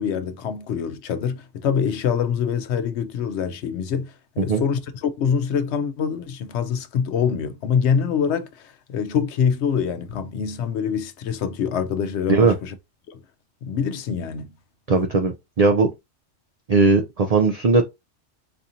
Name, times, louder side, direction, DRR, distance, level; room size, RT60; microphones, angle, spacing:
voice 1, 0.0-12.7 13.1-13.2 13.6-14.5, left 7 dB, 70° left, 0.8 m, -25 dB
voice 2, 14.9-15.9 16.7-17.8, right 4 dB, 70° right, 0.3 m, -18 dB
4.1 x 2.8 x 2.5 m
omnidirectional pair, 1.3 m